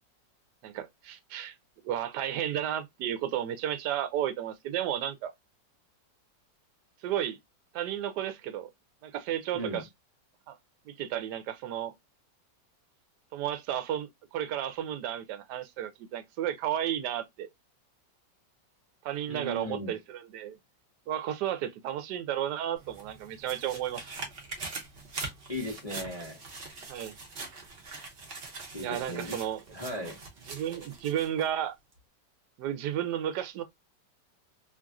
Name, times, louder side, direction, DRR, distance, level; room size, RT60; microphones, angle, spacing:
voice 1, 0.6-1.6 1.8-5.3 7.0-7.4 7.7-8.7 9.0-9.9 10.5-10.6 10.9-11.9 13.3-17.5 19.0-20.6 21.1-24.1 26.9-27.2 28.8-29.6 30.5-31.7 32.6-33.6, right 11 dB, 75° right, 1.1 m, -33 dB
voice 2, 9.5-9.9 19.3-19.9 25.5-26.4 28.7-29.4 29.7-30.2, equal, 65° left, 0.3 m, -37 dB
sound 1, 22.8-31.5 31.9-32.0, right 3 dB, 50° right, 0.7 m, -43 dB
3.1 x 2.5 x 2.3 m
omnidirectional pair, 2.0 m